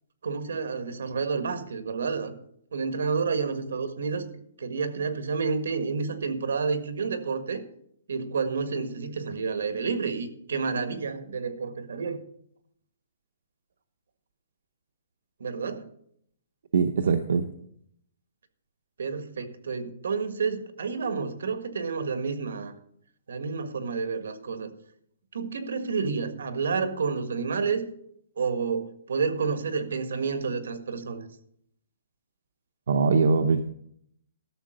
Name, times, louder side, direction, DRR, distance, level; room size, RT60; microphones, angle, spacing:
voice 1, 0.2-2.3 2.7-4.2 4.6-7.6 8.1-12.2 15.4-15.8 19.0-22.7 23.3-24.7 25.3-27.9 28.4-31.2, right 5 dB, 85° right, 8 dB, 1.7 m, -30 dB
voice 2, 16.7-17.4 32.9-33.6, right 5 dB, 65° right, 6 dB, 0.8 m, -22 dB
12.5 x 6.7 x 6.5 m, 0.69 s
hypercardioid pair, 180°, 0 cm